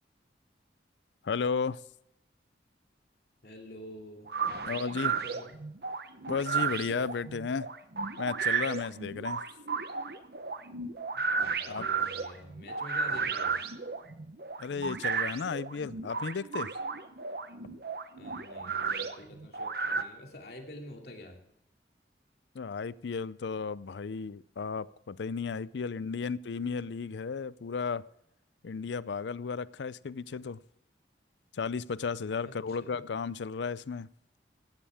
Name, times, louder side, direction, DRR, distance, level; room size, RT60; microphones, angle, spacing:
voice 1, 1.2-1.8 4.7-5.1 6.3-7.7 8.2-9.4 11.7-11.9 14.6-16.7 22.5-28.0 28.6-30.6 31.5-34.1, left 5 dB, 80° left, 0.5 m, -34 dB
voice 2, 3.4-4.3 4.6-5.5 11.1-11.2 11.5-13.6 18.2-21.4 32.4-33.0, left 1 dB, 60° left, 2.5 m, -48 dB
sound 1, 4.3-20.0, right 5 dB, 55° right, 0.9 m, -33 dB
17.0 x 13.0 x 3.5 m
head